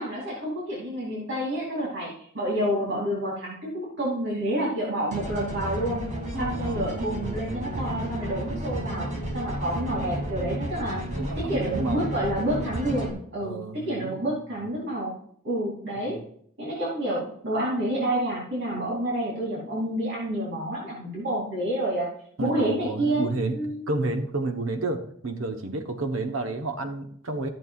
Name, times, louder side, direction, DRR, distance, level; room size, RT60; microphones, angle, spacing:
voice 1, 0.0-6.0 6.4-11.0 11.4-15.1 15.4-16.2 16.6-22.1 22.4-23.3 23.5-23.9, right 1 dB, 60° right, -5 dB, 3.0 m, -29 dB
sound 1, 5.1-13.1, equal, 35° right, 2.0 m, -32 dB
voice 2, 6.3-6.9 11.2-12.3 13.4-14.4 16.1-16.2 22.4-23.6 23.9-27.5, right 2 dB, 75° right, 6 dB, 1.1 m, -31 dB
14.0 x 7.6 x 2.4 m, 0.65 s
head